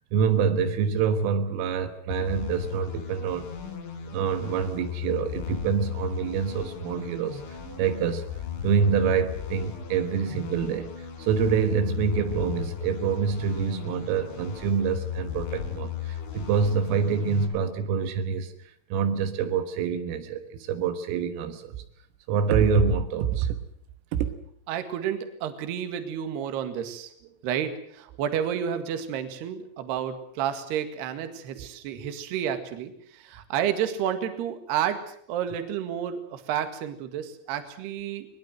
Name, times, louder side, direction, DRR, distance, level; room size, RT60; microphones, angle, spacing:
voice 1, 0.1-3.5 4.1-8.3 8.6-21.8 22.3-23.6 24.1-24.3 31.6-31.7, right 6 dB, 80° right, 9 dB, 4.0 m, -26 dB
sound 1, 2.1-17.5, left 8 dB, 65° left, 5.5 m, -36 dB
voice 2, 24.7-27.1 27.4-38.3, right 9 dB, 60° right, 9 dB, 3.6 m, -30 dB
21.5 x 20.5 x 7.8 m, 0.65 s
omnidirectional pair, 5.9 m